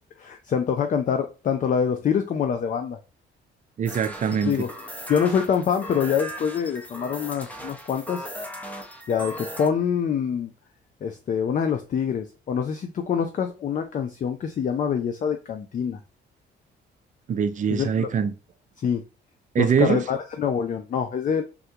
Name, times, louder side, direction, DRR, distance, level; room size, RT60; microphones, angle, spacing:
voice 1, 0.2-3.0 4.4-4.7 5.1-8.3 9.1-10.5 11.0-16.0 17.7-18.1 18.8-19.0 19.6-21.4, left 7 dB, 40° left, 0.4 m, -25 dB
voice 2, 3.8-4.6 17.3-18.3 19.5-20.0, right 7 dB, 40° right, 0.4 m, -23 dB
sound 1, 3.9-9.7, equal, 5° left, 0.7 m, -38 dB
3.5 x 2.2 x 2.7 m
cardioid pair, 90°, 20 cm